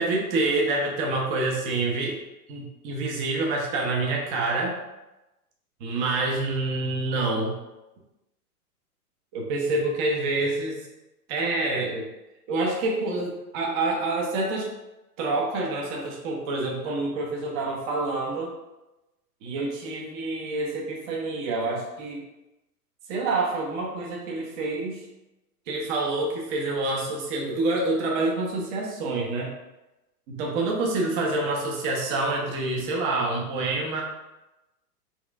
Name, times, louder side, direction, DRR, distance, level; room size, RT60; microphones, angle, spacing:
voice 1, 0.0-2.2 2.5-4.7 5.8-7.6 9.3-10.9 11.3-12.1 12.5-14.7 15.2-18.5 19.4-22.2 23.1-25.0 25.7-29.5 30.3-34.0, right 2 dB, 30° right, -1 dB, 0.7 m, -27 dB
4.2 x 2.5 x 2.3 m, 1.0 s
hypercardioid pair, 120°, 46 cm